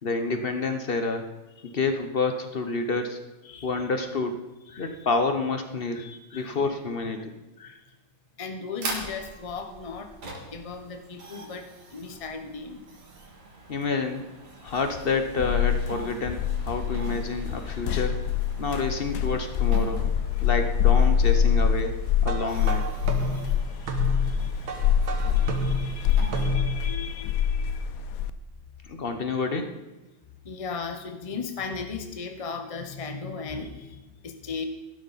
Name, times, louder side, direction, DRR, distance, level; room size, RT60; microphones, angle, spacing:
voice 1, 0.0-1.3 1.6-3.2 3.6-4.4 4.8-6.1 6.3-7.3 13.7-14.2 14.6-18.2 18.6-20.0 20.4-22.0 22.2-22.8 28.9-29.7, left 4 dB, 45° left, 6 dB, 0.8 m, -28 dB
voice 2, 3.4-3.7 4.7-5.1 5.9-6.6 7.6-7.8 8.4-12.8 23.2-24.7 25.3-27.9 30.4-34.6, left 5 dB, 65° left, 6 dB, 0.3 m, -38 dB
sound 1, 8.8-26.5, right 3 dB, 70° right, 2.7 m, -43 dB
sound 2, 14.8-28.3, left 8 dB, 85° left, 0.7 m, -25 dB
sound 3, 22.2-26.9, right 4 dB, 90° right, 2.2 m, -33 dB
14.5 x 12.0 x 4.1 m, 1.1 s
omnidirectional pair, 2.1 m